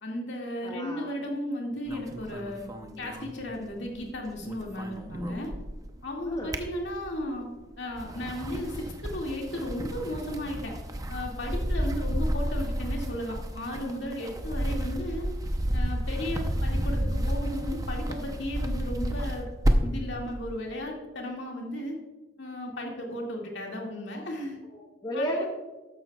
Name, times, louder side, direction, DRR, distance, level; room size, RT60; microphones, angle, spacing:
voice 1, 0.0-2.6 3.0-5.5 6.0-7.5 7.8-10.7 11.1-15.3 15.7-19.5 19.8-22.0 22.4-24.6 25.1-25.4, left 1 dB, 60° left, -1 dB, 2.1 m, -35 dB
voice 2, 0.6-1.1 6.3-6.6 24.7-25.5, equal, 20° left, 1 dB, 0.9 m, -33 dB
sound 1, 1.9-4.0 4.3-5.9 6.3-7.3 7.8-20.1, equal, 20° right, 0.7 m, -31 dB
13.0 x 11.0 x 2.3 m, 1.2 s
head